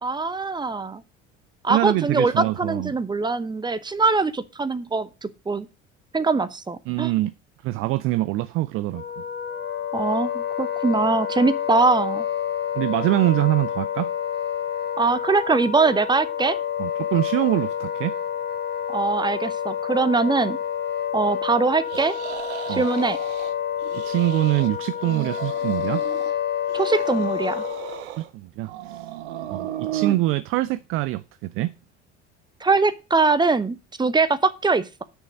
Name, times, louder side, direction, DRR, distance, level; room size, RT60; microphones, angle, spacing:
voice 1, 0.0-1.0 1.6-5.1 5.5-5.7 6.1-7.1 9.9-12.3 15.0-16.6 18.9-20.6 21.1-22.1 22.7-23.2 26.7-27.6 32.6-35.0, right 3 dB, 10° right, 0.7 m, -22 dB
voice 2, 1.7-2.9 6.9-7.3 7.6-9.0 12.7-14.1 16.8-18.1 22.7-22.8 23.9-26.0 28.2-29.0 29.5-31.7, right 17 dB, 40° right, 0.4 m, -24 dB
Wind instrument woodwind instrument, 8.9-28.0, left 9 dB, 30° left, 1.2 m, -29 dB
sound 1, 21.9-23.5 23.8-24.7 25.0-26.3 26.7-28.3 28.6-30.2, right 11 dB, 70° right, 0.9 m, -34 dB
6.3 x 6.2 x 6.3 m
figure-of-eight pair, 60°, 35 cm